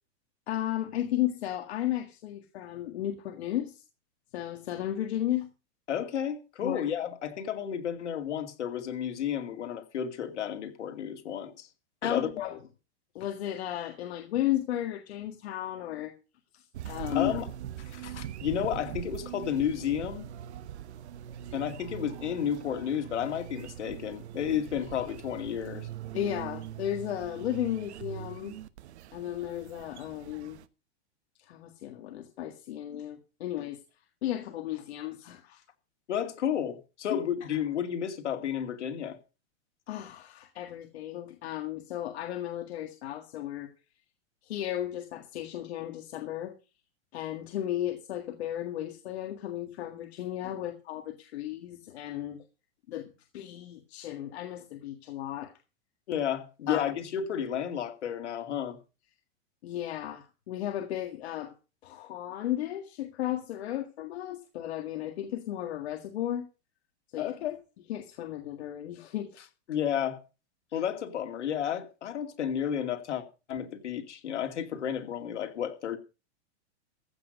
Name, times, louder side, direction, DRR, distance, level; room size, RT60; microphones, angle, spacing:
voice 1, 0.5-3.8 4.3-5.5 12.4-12.6 13.2-16.1 16.5-17.1 26.1-28.5 29.1-30.6 31.4-33.8 34.2-35.6 39.9-43.7 44.4-46.5 47.1-52.4 52.9-53.1 53.3-55.5 59.6-61.5 61.8-66.5 67.1-69.4, left 12 dB, 65° left, 1.9 m, -34 dB
voice 2, 5.9-11.7 12.0-12.3 17.1-17.5 17.9-20.3 21.5-25.9 36.1-39.2 56.1-58.8 69.7-70.2 70.7-76.0, left 9 dB, 90° left, 2.5 m, -31 dB
sound 1, 16.7-30.7, right 11 dB, 75° right, 1.1 m, -42 dB
15.0 x 8.4 x 5.3 m
supercardioid pair, 150°, 34 cm